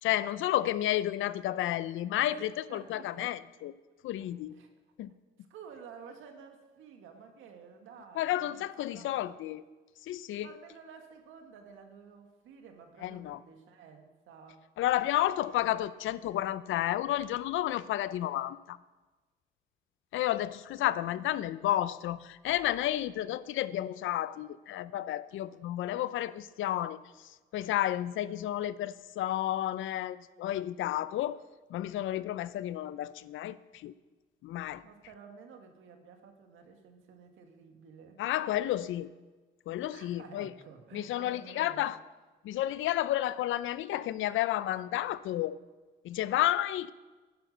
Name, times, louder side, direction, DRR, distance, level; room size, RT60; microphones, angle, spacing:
voice 1, 0.0-3.7 4.0-4.5 5.0-5.1 8.2-9.6 10.0-10.5 13.0-13.4 14.8-18.8 20.1-31.4 31.7-33.9 34.4-34.8 38.2-39.1 39.7-40.5 40.9-42.0 42.4-45.6 46.0-46.9, left 13 dB, 80° left, 0.5 m, -31 dB
voice 2, 2.3-3.3 4.2-4.3 4.5-4.7 5.4-9.4 10.4-14.7 20.8-21.7 34.8-38.2 39.9-41.9, right 6 dB, 85° right, 1.8 m, -52 dB
10.5 x 10.5 x 6.5 m
cardioid pair, 90°, 20 cm